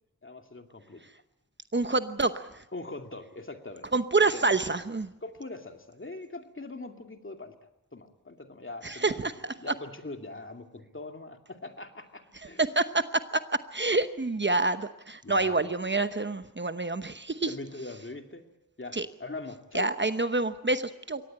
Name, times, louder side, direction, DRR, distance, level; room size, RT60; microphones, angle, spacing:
voice 1, 0.2-1.0 2.7-3.9 4.3-4.7 5.2-7.5 7.9-9.3 9.6-12.6 15.2-15.6 17.5-18.4 18.8-19.9, left 2 dB, 40° left, 5 dB, 2.5 m, -42 dB
voice 2, 1.7-2.4 3.9-5.1 8.8-9.5 12.6-13.4 13.7-17.5 18.9-19.1 19.7-21.2, right 3 dB, 35° right, 11 dB, 1.0 m, -27 dB
23.5 x 18.0 x 8.7 m, 0.87 s
wide cardioid pair, 60°, 33 cm